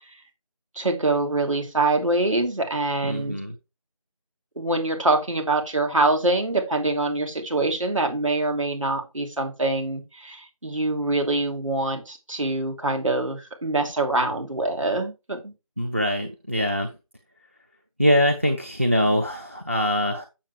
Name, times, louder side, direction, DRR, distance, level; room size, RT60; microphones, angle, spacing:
voice 1, 0.8-3.4 4.6-15.5, right 2 dB, 60° right, 3 dB, 2.9 m, -24 dB
voice 2, 3.0-3.6 15.8-16.9 18.0-20.3, equal, 20° right, 5 dB, 0.5 m, -23 dB
7.3 x 7.1 x 3.4 m, 0.26 s
figure-of-eight pair, 165°, 18 cm